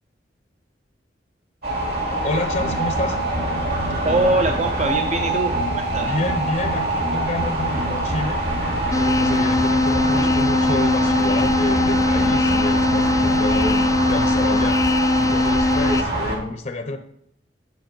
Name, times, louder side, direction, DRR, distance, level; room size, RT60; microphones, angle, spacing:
sound 1, 1.6-16.4, right 1 dB, 60° right, 3.0 m, -24 dB
voice 1, 2.2-3.2 6.0-8.4 9.0-14.8 15.2-17.0, left 2 dB, 45° left, 7 dB, 0.7 m, -28 dB
voice 2, 4.0-6.2 10.1-10.5, right 2 dB, 40° right, 5 dB, 0.6 m, -23 dB
sound 2, 8.9-16.0, left 2 dB, 20° left, 0.3 m, -20 dB
10.5 x 6.1 x 4.4 m, 0.72 s
head